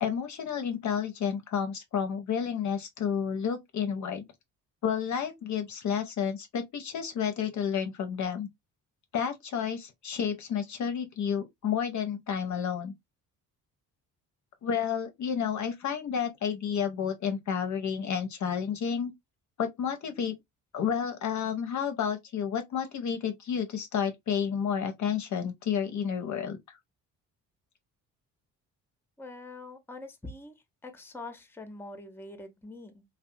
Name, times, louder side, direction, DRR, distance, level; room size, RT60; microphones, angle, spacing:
voice 1, 0.0-4.2 4.8-8.5 9.1-12.9 14.6-19.1 19.6-20.3 20.7-26.6, left 7 dB, 45° left, 0.6 m, -31 dB
voice 2, 29.2-33.0, left 2 dB, 5° left, 0.6 m, -44 dB
2.7 x 2.1 x 2.5 m
hypercardioid pair, 55°, 41 cm